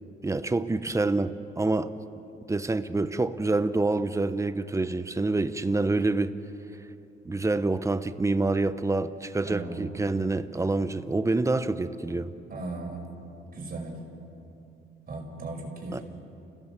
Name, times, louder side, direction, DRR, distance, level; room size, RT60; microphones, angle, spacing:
voice 1, 0.2-1.9 2.5-6.3 7.2-12.3 15.9-16.0, right 2 dB, 15° right, 11 dB, 1.0 m, -27 dB
voice 2, 9.4-9.9 12.5-13.0 13.5-14.0 15.1-16.0, right 3 dB, 45° right, 1 dB, 5.1 m, -37 dB
30.0 x 16.5 x 7.5 m, 2.9 s
cardioid pair, 90°, 20 cm